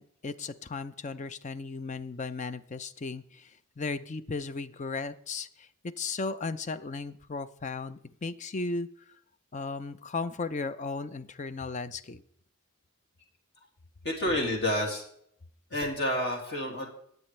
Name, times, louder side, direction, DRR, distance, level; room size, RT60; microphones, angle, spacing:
voice 1, 0.0-3.5 3.8-8.9 9.5-12.2, left 3 dB, 35° left, 13 dB, 0.5 m, -36 dB
voice 2, 14.0-15.0 15.7-16.9, left 1 dB, 50° left, 0 dB, 2.3 m, -29 dB
19.0 x 8.0 x 3.2 m, 0.68 s
head